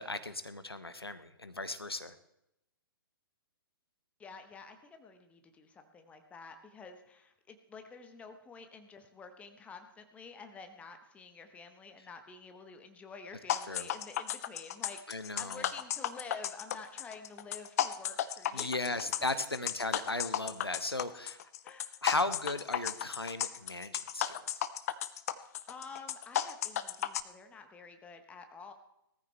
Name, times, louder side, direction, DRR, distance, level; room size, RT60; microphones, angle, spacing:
voice 1, 0.0-2.1 13.7-13.9 15.1-15.7 18.5-21.4 22.0-24.4, left 2 dB, 85° left, 12 dB, 1.0 m, -36 dB
voice 2, 4.2-19.4 21.6-22.0 25.7-28.7, left 4 dB, 10° left, 7 dB, 1.1 m, -50 dB
sound 1, 13.5-27.2, left 11 dB, 40° left, 0.6 m, -34 dB
18.5 x 14.0 x 3.3 m, 0.84 s
figure-of-eight pair, 120°, 13 cm